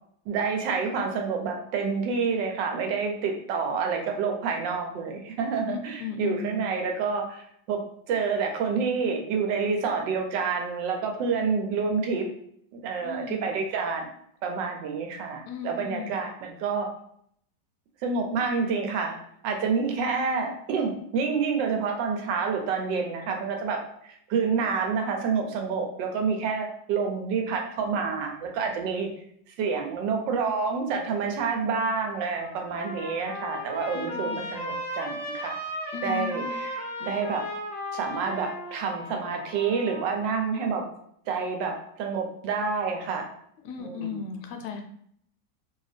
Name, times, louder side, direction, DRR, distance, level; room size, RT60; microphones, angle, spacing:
voice 1, 0.3-7.8 8.1-12.3 12.7-14.1 14.4-16.9 18.0-19.2 19.4-29.1 29.5-35.6 36.0-37.5 37.9-40.9 41.3-43.2 43.8-44.2, right 5 dB, 80° right, 2 dB, 1.3 m, -28 dB
voice 2, 5.7-6.6 13.0-13.5 15.5-16.2 33.9-34.5 35.9-36.5 43.6-44.8, left 5 dB, 75° left, 4 dB, 1.1 m, -36 dB
Trumpet, 32.0-40.4, left 1 dB, 45° left, 0.5 m, -36 dB
2.8 x 2.7 x 3.3 m, 0.67 s
omnidirectional pair, 2.0 m